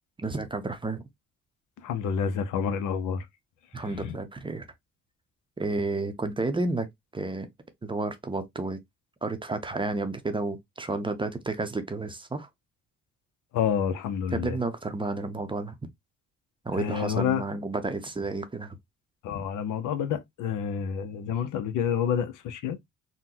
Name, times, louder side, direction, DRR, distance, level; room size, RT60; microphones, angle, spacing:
voice 1, 0.2-1.0 3.7-4.6 5.6-6.9 7.1-7.5 7.8-8.8 9.2-12.5 14.3-15.8 16.6-18.8, right 3 dB, 15° right, 0.6 m, -31 dB
voice 2, 1.8-3.2 4.0-4.1 13.5-14.6 16.8-17.4 19.2-22.8, left 8 dB, 75° left, 0.7 m, -28 dB
3.8 x 2.2 x 2.7 m
cardioid pair, 90°, 30 cm